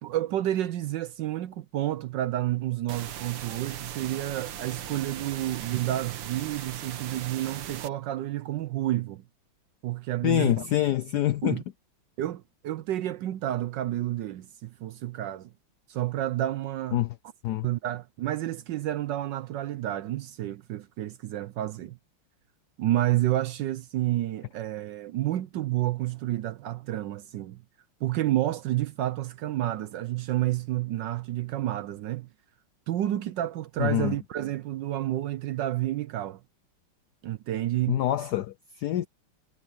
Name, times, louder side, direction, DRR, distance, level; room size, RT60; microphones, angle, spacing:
voice 1, 0.0-9.2 9.8-10.7 11.4-11.6 12.2-15.5 15.9-17.0 17.6-22.0 22.8-27.6 28.0-32.3 32.9-36.4 37.2-38.0, right 14 dB, 70° right, 1.1 m, -30 dB
sound 1, 2.9-7.9, right 9 dB, 90° right, 2.1 m, -39 dB
voice 2, 10.2-11.6 16.9-17.1 17.4-17.7 33.8-34.1 37.9-39.1, left 13 dB, 90° left, 0.8 m, -26 dB
omnidirectional pair, 2.4 m